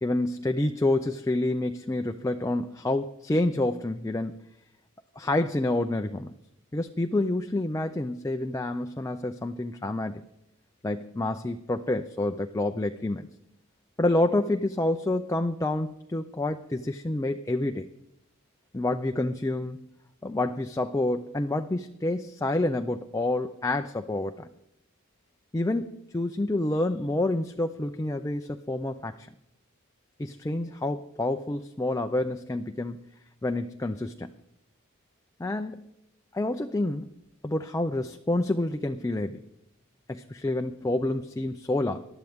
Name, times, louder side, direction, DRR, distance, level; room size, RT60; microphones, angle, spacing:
voice 1, 0.0-4.3 5.2-6.4 6.7-10.2 10.8-13.3 14.0-17.9 18.7-19.8 20.2-24.5 25.5-29.3 30.2-33.0 33.4-34.3 35.4-35.9 36.3-37.1 37.4-39.5 40.1-42.0, left 2 dB, 15° left, 6 dB, 0.4 m, -28 dB
19.0 x 12.0 x 3.6 m, 0.84 s
head